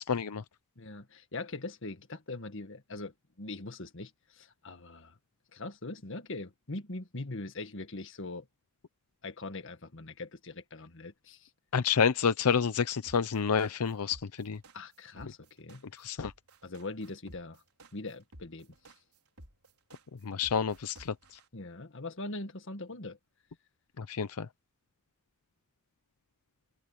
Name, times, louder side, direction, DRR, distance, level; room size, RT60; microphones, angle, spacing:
voice 1, 0.1-0.4 11.7-14.6 15.9-16.3 20.2-21.4 24.0-24.5, left 6 dB, 85° left, 0.6 m, -29 dB
voice 2, 0.7-5.2 5.5-8.5 9.2-11.5 14.7-15.8 16.6-17.6 17.9-18.7 21.5-23.2, left 2 dB, 60° left, 1.8 m, -41 dB
sound 1, 13.1-21.4, right 1 dB, 80° right, 5.2 m, -53 dB
head